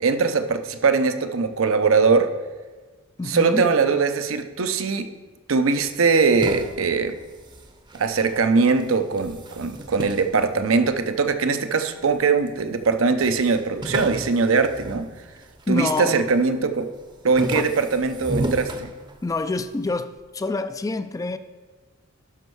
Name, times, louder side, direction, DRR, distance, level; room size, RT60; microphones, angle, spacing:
voice 1, 0.0-2.3 3.3-5.1 5.5-7.2 7.9-15.1 15.7-16.9 17.2-18.9, right 4 dB, 75° right, 0.6 m, -21 dB
voice 2, 3.2-3.7 15.7-16.3 17.5-17.7 19.2-21.4, left 3 dB, 15° left, 0.3 m, -27 dB
sound 1, 5.8-8.5 8.8-11.3 11.9-12.6 12.8-12.9 13.2-15.8 16.2-16.6 17.0-19.6, right 1 dB, 20° right, 0.7 m, -34 dB
12.0 x 5.3 x 4.6 m
head